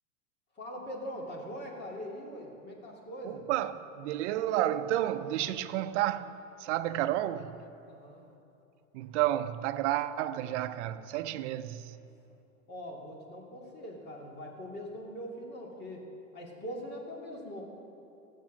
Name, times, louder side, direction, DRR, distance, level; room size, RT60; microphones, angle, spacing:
voice 1, 0.6-3.5 7.9-8.3 12.7-16.0 16.3-17.6, equal, 25° left, 2.3 m, -42 dB
voice 2, 3.2-7.7 8.9-12.0, right 13 dB, 55° right, 0.7 m, -31 dB
15.5 x 7.5 x 6.1 m
hypercardioid pair, 125°, 41 cm